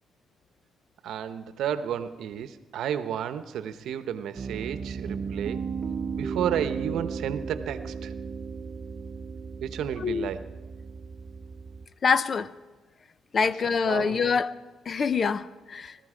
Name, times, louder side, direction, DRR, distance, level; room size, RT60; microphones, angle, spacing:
voice 1, 1.0-5.6 6.1-8.1 9.6-10.5 13.4-14.3, right 9 dB, 75° right, 0.9 m, -32 dB
Piano, 4.4-11.9, right 5 dB, 45° right, 0.6 m, -35 dB
voice 2, 12.0-12.5 13.3-14.6 14.9-15.9, left 5 dB, 45° left, 0.6 m, -25 dB
20.0 x 14.0 x 5.0 m
cardioid pair, 90°, 0 cm